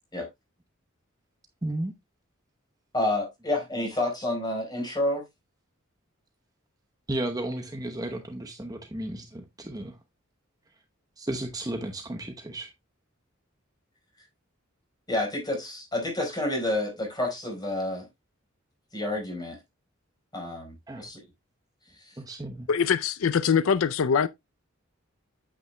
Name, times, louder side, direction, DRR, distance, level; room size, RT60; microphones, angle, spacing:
voice 1, 1.6-1.9 7.1-10.0 11.2-12.7 20.9-21.1 22.2-22.7, right 1 dB, 20° right, 0.9 m, -34 dB
voice 2, 2.9-5.2 15.1-18.1 18.9-19.6 20.3-21.2 22.0-22.1, left 1 dB, 20° left, 4.5 m, -29 dB
voice 3, 22.7-24.3, left 6 dB, 75° left, 0.5 m, -23 dB
9.1 x 8.4 x 2.2 m
head